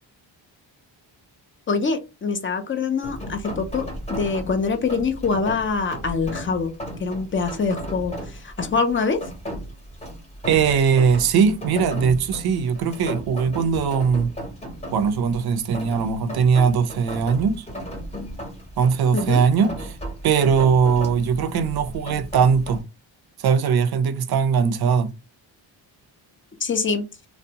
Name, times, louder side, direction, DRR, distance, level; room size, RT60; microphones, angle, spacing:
voice 1, 1.7-6.7 7.0-9.2 19.1-19.4 26.6-27.1, left 4 dB, 30° left, 0.4 m, -24 dB
Rain, 3.0-22.8, equal, 15° left, 0.8 m, -35 dB
voice 2, 10.5-14.3 14.9-17.7 18.8-20.0 20.2-22.8 23.4-25.1, right 6 dB, 55° right, 0.5 m, -20 dB
2.6 x 2.1 x 2.7 m
wide cardioid pair, 130°, 45 cm